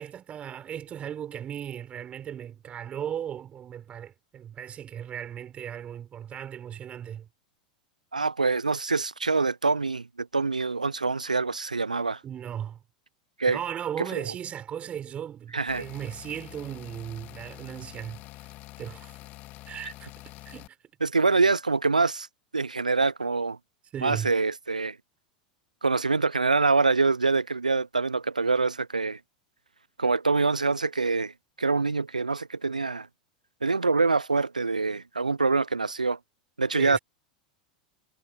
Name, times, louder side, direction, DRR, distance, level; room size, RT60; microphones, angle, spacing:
voice 1, 0.0-7.3 12.2-12.8 13.5-18.2 18.8-19.2 19.7-20.1 20.4-20.8 23.9-24.3 36.7-37.0, right 9 dB, 30° right, 4.5 m, -36 dB
voice 2, 8.1-12.2 13.4-13.6 15.5-15.9 19.8-19.9 21.0-22.3 22.5-23.6 24.0-25.0 25.8-29.2 30.0-33.1 33.6-36.2 36.6-37.0, right 4 dB, 90° right, 0.5 m, -25 dB
sound 1, 15.7-20.7, left 19 dB, 45° left, 1.9 m, -46 dB
figure-of-eight pair, 85°, 4 cm